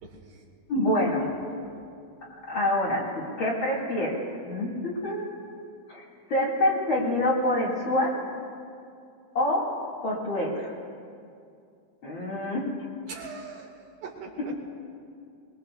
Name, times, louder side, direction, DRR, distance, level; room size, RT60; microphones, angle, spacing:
voice 1, 0.7-1.3 2.5-4.2 4.4-5.4 5.9-6.0 6.3-8.2 9.3-9.7 10.0-10.7 12.0-12.7 14.4-14.5, left 1 dB, 40° left, -5 dB, 2.7 m, -26 dB
voice 2, 1.2-1.6 13.1-13.7 14.0-14.6, right 5 dB, 90° right, -2 dB, 3.8 m, -41 dB
23.5 x 22.0 x 2.4 m, 2.4 s
omnidirectional pair, 3.8 m